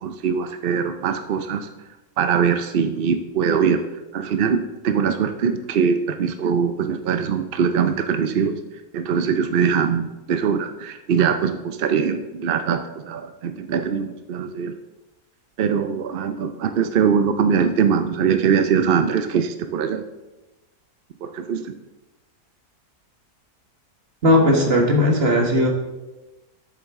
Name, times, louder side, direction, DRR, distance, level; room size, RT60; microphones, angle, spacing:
voice 1, 0.0-1.7 2.2-3.8 4.1-8.6 8.9-14.7 15.6-20.0 21.2-21.7, right 6 dB, 65° right, 8 dB, 0.5 m, -22 dB
voice 2, 24.2-25.7, left 1 dB, 45° right, 1 dB, 1.7 m, -17 dB
12.5 x 7.1 x 3.6 m, 1.1 s
omnidirectional pair, 1.6 m